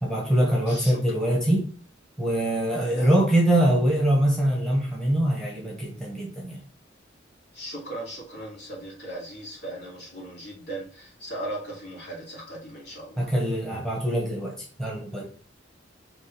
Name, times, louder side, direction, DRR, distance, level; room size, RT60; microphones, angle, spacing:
voice 1, 0.0-1.7 2.2-6.6 13.2-15.3, right 1 dB, 5° left, -3 dB, 1.4 m, -23 dB
voice 2, 0.7-1.2 2.8-3.3 7.5-13.3, right 1 dB, 60° left, -3 dB, 2.5 m, -38 dB
5.2 x 3.3 x 5.4 m, 0.42 s
head